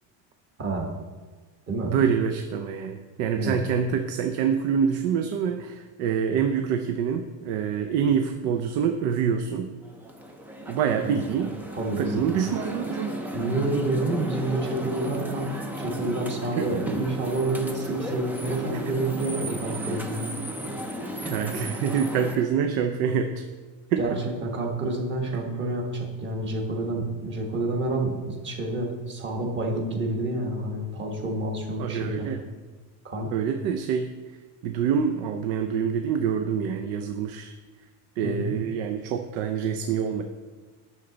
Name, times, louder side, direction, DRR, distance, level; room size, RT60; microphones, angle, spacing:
voice 1, 1.9-9.7 10.7-11.6 12.0-13.2 16.6-16.7 21.2-23.5 23.9-24.0 31.8-32.4 33.3-34.1 34.6-37.5 38.2-40.2, right 7 dB, 75° right, 6 dB, 0.7 m, -26 dB
sound 1, 9.8-22.3, right 1 dB, 5° right, 0.3 m, -34 dB
voice 2, 11.7-12.2 13.3-20.3 24.0-32.3 33.0-33.3 38.2-38.5, right 2 dB, 25° right, 1 dB, 1.3 m, -28 dB
10.0 x 6.6 x 3.9 m, 1.4 s
cardioid pair, 165°, 42 cm